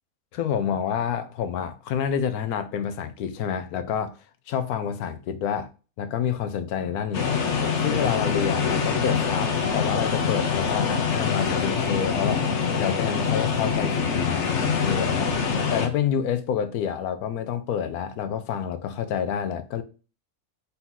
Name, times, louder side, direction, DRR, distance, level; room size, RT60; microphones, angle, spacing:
voice 1, 0.3-4.2 4.5-5.7 6.0-7.3 7.8-15.4 15.7-19.8, left 8 dB, 85° left, 1.1 m, -28 dB
sound 1, 7.1-15.9, left 6 dB, 60° left, 1.0 m, -25 dB
4.1 x 2.8 x 3.7 m
omnidirectional pair, 1.5 m